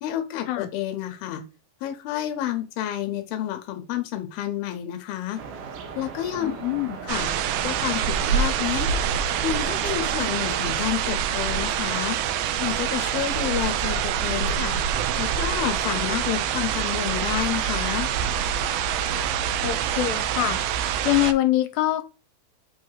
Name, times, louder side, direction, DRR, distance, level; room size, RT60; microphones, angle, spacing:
voice 1, 0.0-1.4 1.8-5.4 6.0-6.5 7.0-7.3 7.6-8.9 9.4-12.2 12.6-14.8 15.2-18.1, left 12 dB, 75° left, 2.6 m, -29 dB
sound 1, 5.4-10.6, right 6 dB, 70° right, 2.3 m, -37 dB
voice 2, 6.4-7.0 19.6-20.6 21.0-22.0, left 15 dB, 90° left, 2.7 m, -24 dB
sound 2, 7.1-21.3, right 8 dB, 85° right, 2.1 m, -25 dB
7.8 x 2.8 x 5.6 m
omnidirectional pair, 4.8 m